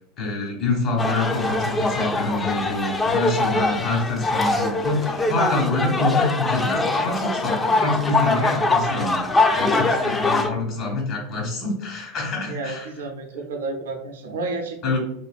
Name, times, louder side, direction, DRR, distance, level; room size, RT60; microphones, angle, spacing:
voice 1, 0.2-12.9 14.8-15.0, left 2 dB, 50° left, 0 dB, 1.2 m, -26 dB
sound 1, 1.0-10.5, left 2 dB, 20° left, 0.3 m, -23 dB
voice 2, 12.5-15.0, right 3 dB, 80° right, 1 dB, 0.4 m, -31 dB
2.7 x 2.5 x 2.4 m, 0.78 s
hypercardioid pair, 95°, 0 cm